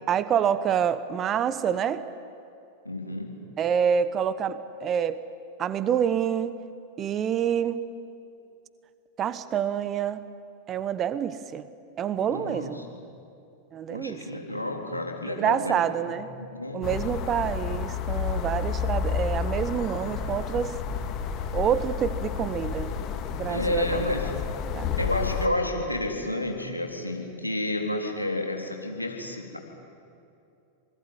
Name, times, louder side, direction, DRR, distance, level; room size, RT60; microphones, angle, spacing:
voice 1, 0.1-2.0 3.6-5.2 5.6-6.6 7.0-7.8 9.2-10.2 10.7-11.6 12.0-12.8 13.7-14.3 15.3-16.3 16.7-20.8 21.5-23.0 23.3-24.1 24.7-24.9, right 8 dB, 30° right, 14 dB, 1.2 m, -27 dB
voice 2, 2.9-3.4 12.3-13.0 13.9-15.8 16.0-16.9 23.5-24.4 25.0-29.6, left 2 dB, 85° left, 1 dB, 3.6 m, -31 dB
sound 1, 16.8-25.5, left 6 dB, 35° left, 2.1 m, -30 dB
27.0 x 20.0 x 9.7 m, 2.6 s
figure-of-eight pair, 90°, 0 cm